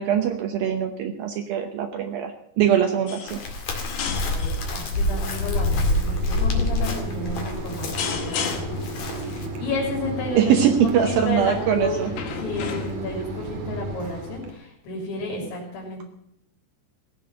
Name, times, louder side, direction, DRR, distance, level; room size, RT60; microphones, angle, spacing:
voice 1, 0.0-3.4 10.4-12.1, right 9 dB, 80° right, 6 dB, 2.0 m, -22 dB
sound 1, 3.1-3.5 3.8-4.6 5.3-5.7 6.5-6.8 8.0-8.9 11.0-11.3 12.1-13.2 14.2-14.3, left 7 dB, 90° left, 4.3 m, -33 dB
Chirp tweet, 3.3-9.5, left 2 dB, 45° left, 2.8 m, -26 dB
Mechanisms, 3.6-14.5, right 2 dB, 55° right, 3.7 m, -34 dB
voice 2, 4.0-10.6 10.8-12.1 12.4-16.0, left 2 dB, 75° left, -2 dB, 5.5 m, -32 dB
17.0 x 7.7 x 8.9 m, 0.76 s
omnidirectional pair, 5.4 m